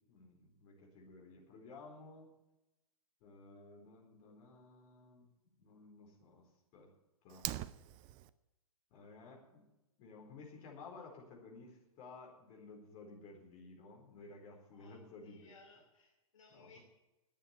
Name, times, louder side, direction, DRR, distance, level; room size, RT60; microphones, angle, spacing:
voice 1, 0.1-2.3 3.2-5.3 5.6-6.9 7.2-7.5 8.9-9.6 10.0-15.5 16.5-16.8, left 3 dB, 35° left, 0 dB, 4.2 m, -55 dB
Fire, 7.3-8.3, right 14 dB, 25° right, 0.5 m, -42 dB
voice 2, 14.7-16.8, left 3 dB, 60° left, 0 dB, 2.8 m, -62 dB
10.5 x 8.7 x 9.7 m, 0.97 s
figure-of-eight pair, 115°, 19 cm